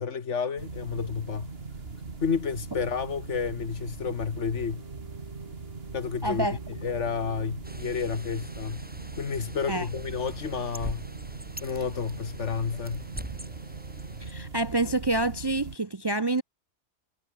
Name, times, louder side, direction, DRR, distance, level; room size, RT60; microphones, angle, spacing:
voice 1, 0.0-1.5 2.2-4.8 5.9-6.5 6.8-8.9 9.2-11.1 11.6-13.1, left 6 dB, 75° left, 1.8 m, -30 dB
sound 1, 0.6-15.8, right 4 dB, 55° right, 2.3 m, -40 dB
sound 2, 4.3-15.2, right 3 dB, 75° right, 3.6 m, -55 dB
voice 2, 6.2-6.6 9.7-9.9 14.2-16.4, right 2 dB, 30° right, 0.5 m, -27 dB
Bird, 7.6-14.3, right 1 dB, 10° right, 1.6 m, -44 dB
omnidirectional pair, 1.2 m